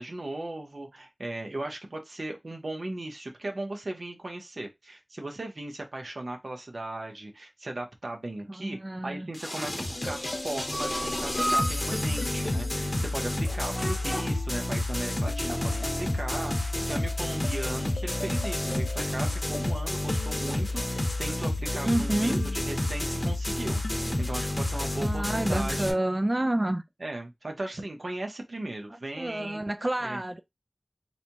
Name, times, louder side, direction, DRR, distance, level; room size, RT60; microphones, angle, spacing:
voice 1, 0.0-8.8 9.0-26.0 27.0-29.6 30.0-30.2, right 2 dB, 80° right, 0.9 m, -37 dB
voice 2, 8.5-9.3 21.8-22.5 25.0-26.8 29.2-30.4, right 1 dB, 35° right, 0.3 m, -29 dB
sound 1, 9.3-25.9, left 1 dB, 45° left, 0.8 m, -30 dB
sound 2, 9.9-23.3 23.8-25.0, left 2 dB, 70° left, 0.4 m, -42 dB
sound 3, 10.7-11.9 13.4-14.5, equal, ahead, 0.9 m, -32 dB
4.1 x 2.3 x 2.9 m
wide cardioid pair, 40°, 0 cm